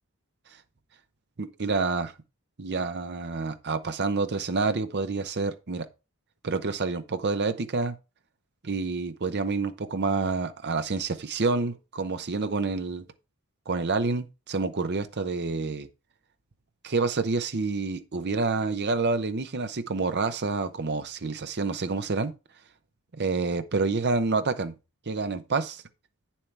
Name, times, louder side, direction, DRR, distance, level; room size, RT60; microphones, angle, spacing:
voice 1, 1.4-2.1 2.6-5.9 6.4-7.9 8.6-13.0 13.7-15.9 16.8-22.3 23.2-24.7 25.1-25.8, right 3 dB, 50° right, 0.8 m, -28 dB
8.7 x 7.3 x 3.3 m
head